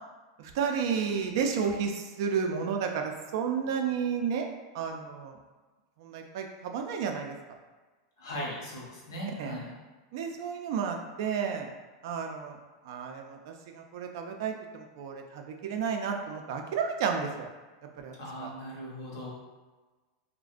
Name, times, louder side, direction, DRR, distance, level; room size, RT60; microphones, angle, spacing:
voice 1, 0.4-4.5 4.7-5.4 6.0-7.4 9.4-9.5 10.1-11.7 12.0-12.6 12.8-17.5 18.0-18.1 18.4-18.5, right 6 dB, 65° right, 3 dB, 0.3 m, -32 dB
voice 2, 8.2-9.7 18.2-19.3, equal, 85° left, -4 dB, 0.8 m, -38 dB
2.4 x 2.1 x 2.4 m, 1.3 s
supercardioid pair, 125°, 2 cm